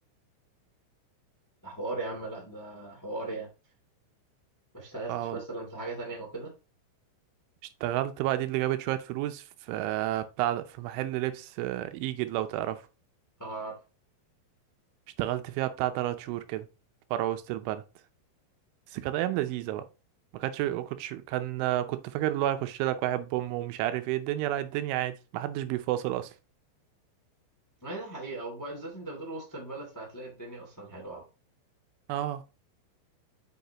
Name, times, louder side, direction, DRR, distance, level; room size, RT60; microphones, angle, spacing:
voice 1, 1.6-3.5 4.7-6.5 13.4-13.8 27.8-31.2, right 2 dB, 25° left, 0.4 m, -38 dB
voice 2, 5.1-5.4 7.8-12.8 15.2-16.7 17.1-17.8 18.9-19.8 20.3-26.3 32.1-32.4, right 14 dB, 85° right, 3.1 m, -30 dB
8.0 x 5.8 x 3.0 m
omnidirectional pair, 5.5 m